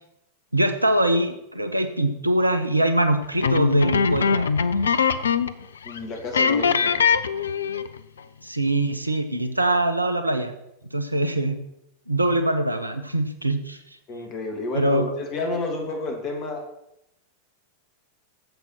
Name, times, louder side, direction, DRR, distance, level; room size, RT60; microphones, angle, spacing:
voice 1, 0.5-4.5 4.9-5.0 8.4-10.5 10.9-11.6 12.1-13.8 14.7-15.1, right 1 dB, 85° right, 9 dB, 1.0 m, -23 dB
sound 1, 3.4-5.6 5.9-6.0 6.3-8.0, left 6 dB, 70° left, 0.6 m, -21 dB
voice 2, 5.8-7.0 14.1-16.6, left 2 dB, 35° left, 2 dB, 2.9 m, -30 dB
10.5 x 7.5 x 6.1 m, 0.83 s
figure-of-eight pair, 90°, 0 cm